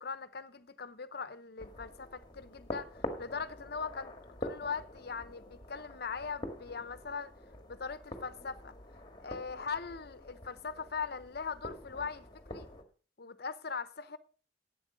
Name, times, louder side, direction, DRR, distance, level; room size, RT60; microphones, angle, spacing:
voice 1, 0.0-4.1 4.4-7.3 7.7-8.7 9.2-12.7 13.2-14.2, left 5 dB, 55° left, 0.8 m, -40 dB
sound 1, 1.6-12.8, left 1 dB, 25° left, 1.6 m, -46 dB
11.5 x 8.5 x 5.0 m
head